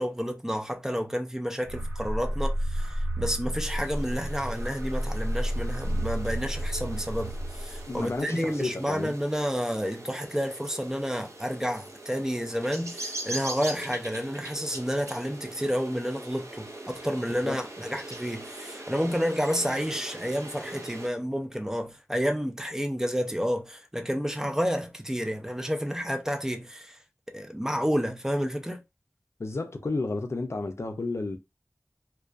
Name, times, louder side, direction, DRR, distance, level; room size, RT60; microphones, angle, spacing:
voice 1, 0.0-27.0 27.3-28.8, equal, 10° right, 0.4 m, -30 dB
sound 1, 1.6-8.2, equal, 45° right, 1.1 m, -31 dB
sound 2, 3.7-21.1, right 1 dB, 80° right, 0.6 m, -42 dB
voice 2, 7.9-9.1 17.4-17.6 29.4-31.4, left 3 dB, 65° left, 0.4 m, -32 dB
2.4 x 2.2 x 2.3 m
wide cardioid pair, 50°, 5 cm